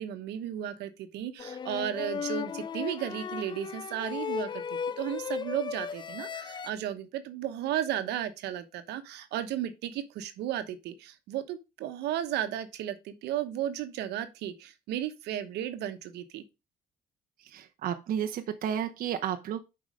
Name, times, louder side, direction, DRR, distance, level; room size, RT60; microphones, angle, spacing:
voice 1, 0.0-4.6 5.0-16.4, right 11 dB, 80° right, 1.1 m, -34 dB
sound 1, 1.4-6.7, left 7 dB, 25° left, 0.4 m, -36 dB
voice 2, 17.4-19.6, right 9 dB, 55° right, 0.8 m, -32 dB
7.4 x 4.8 x 5.1 m
cardioid pair, 110°, 17 cm